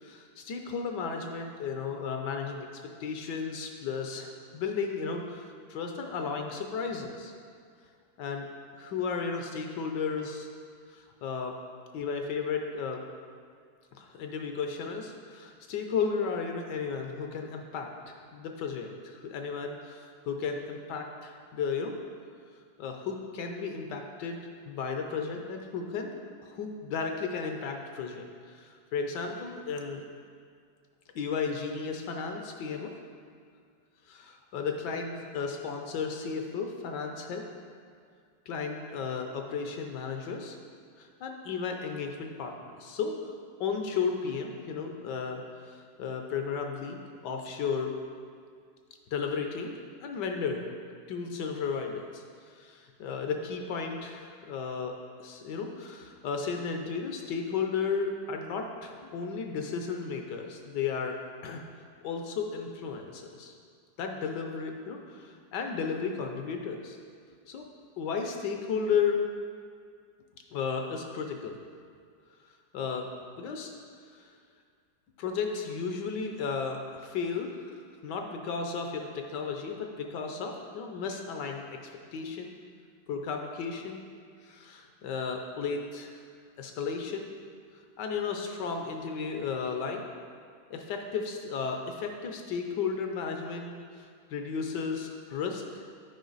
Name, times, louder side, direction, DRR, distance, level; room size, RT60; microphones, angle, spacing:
voice 1, 0.0-7.3 8.2-8.4 8.8-10.5 10.9-11.5 11.9-13.0 13.9-22.0 22.8-24.4 24.7-26.2 26.5-30.0 31.1-32.9 34.1-37.4 38.5-40.6 41.0-43.1 43.6-47.9 49.1-49.7 50.0-50.7 51.1-52.2 52.5-54.9 55.2-61.2 61.4-61.6 62.0-63.5 64.0-67.0 67.5-67.6 68.0-69.2 70.5-71.6 72.7-73.1 73.4-73.7 74.1-74.3 75.2-82.5 83.1-84.0 84.4-86.2 86.6-87.3 88.0-90.1 90.7-95.8, left 5 dB, 70° left, 3 dB, 1.2 m, -34 dB
9.1 x 5.1 x 3.9 m, 2.2 s
omnidirectional pair, 2.1 m